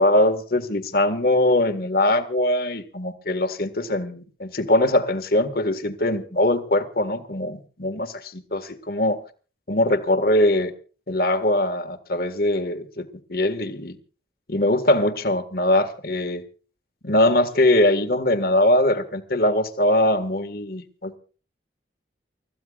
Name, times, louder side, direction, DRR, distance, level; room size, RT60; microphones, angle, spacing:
voice 1, 0.0-9.2 9.7-10.7 11.1-14.0 14.5-16.4 17.0-21.2, left 1 dB, 55° left, 1.7 m, -22 dB
29.5 x 14.5 x 2.4 m
head